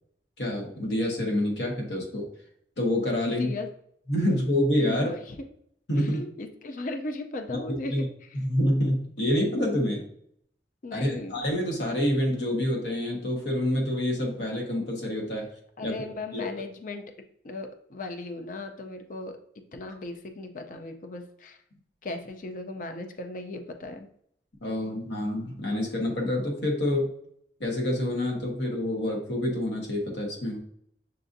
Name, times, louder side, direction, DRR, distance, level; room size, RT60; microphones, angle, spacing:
voice 1, 0.4-2.3 2.8-3.5 4.1-5.1 5.9-6.2 7.7-8.1 8.5-10.0 10.9-15.5 15.8-15.9 16.3-16.5 24.6-27.1 27.6-30.6, left 1 dB, 80° left, 0 dB, 1.2 m, -27 dB
voice 2, 3.3-3.7 4.9-5.4 6.0-8.4 10.8-11.4 15.8-17.0 17.4-19.4 19.7-21.6 22.0-24.1, left 2 dB, 50° left, 6 dB, 0.5 m, -37 dB
6.6 x 2.5 x 2.6 m, 0.68 s
head